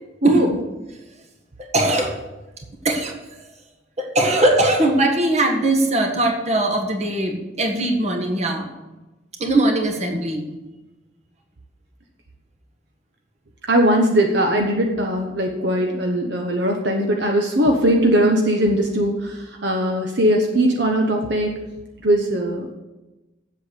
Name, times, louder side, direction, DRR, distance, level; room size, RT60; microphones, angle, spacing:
voice 1, 0.2-0.5 13.7-21.5 22.0-22.7, right 1 dB, 60° right, 2 dB, 1.1 m, -20 dB
voice 2, 1.6-2.2 2.8-3.5 4.0-8.7 9.4-10.5, right 1 dB, 35° right, 3 dB, 1.6 m, -20 dB
8.0 x 7.9 x 8.3 m, 1.1 s
head